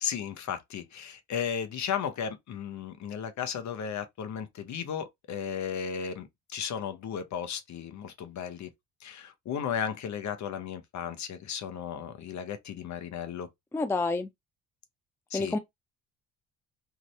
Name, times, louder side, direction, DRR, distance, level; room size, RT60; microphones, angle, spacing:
voice 1, 0.0-8.7 9.0-13.5 15.3-15.6, left 8 dB, 50° left, 0.8 m, -35 dB
voice 2, 13.7-14.3 15.3-15.6, left 3 dB, 5° left, 0.5 m, -28 dB
2.6 x 2.5 x 3.1 m
hypercardioid pair, 60°, 38 cm